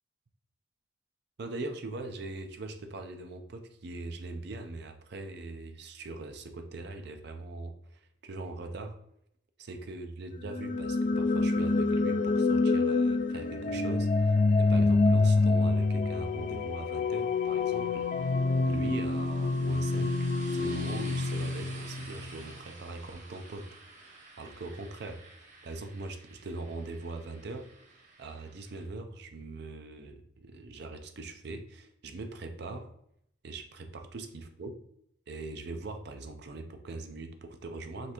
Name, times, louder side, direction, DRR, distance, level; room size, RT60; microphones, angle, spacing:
voice 1, 1.4-9.0 9.6-18.3 18.7-23.7 23.9-32.9 33.4-34.8 35.3-38.1, right 2 dB, 60° right, 6 dB, 0.5 m, -41 dB
sound 1, 10.5-22.4, left 3 dB, 45° left, 0.3 m, -27 dB
sound 2, 14.0-28.8, right 3 dB, 40° right, 1.0 m, -52 dB
5.3 x 3.4 x 2.9 m, 0.73 s
head